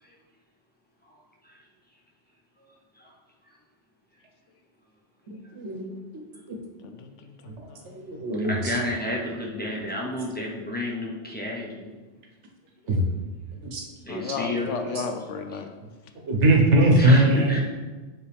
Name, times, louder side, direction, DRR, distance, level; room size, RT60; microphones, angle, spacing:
voice 1, 5.3-5.9 6.1-6.2 7.5-7.6 7.9-8.8 12.9-13.0 13.6-13.8 16.2-17.6, right 1 dB, 70° right, 1 dB, 1.2 m, -21 dB
voice 2, 6.8-8.2 14.1-15.7, left 5 dB, 75° left, 6 dB, 0.9 m, -35 dB
voice 3, 8.5-11.9 14.1-14.8 17.0-17.6, left 1 dB, 10° left, -3 dB, 0.8 m, -30 dB
7.2 x 3.9 x 3.4 m, 1.3 s
omnidirectional pair, 1.3 m